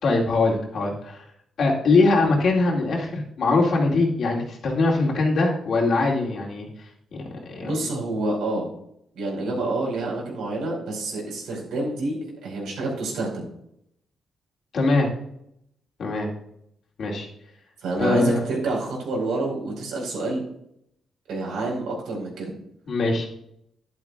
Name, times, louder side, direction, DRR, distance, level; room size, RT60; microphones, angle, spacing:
voice 1, 0.0-1.2 1.6-6.7 7.5-7.7 14.7-15.1 16.0-16.3 17.0-17.3 18.0-18.4 22.9-23.3, left 3 dB, 50° left, -2 dB, 2.3 m, -22 dB
voice 2, 7.6-8.7 9.1-13.5 17.8-20.4 21.3-22.5, right 2 dB, 90° right, -1 dB, 4.7 m, -28 dB
11.5 x 11.0 x 2.4 m, 0.74 s
wide cardioid pair, 165°, 0 cm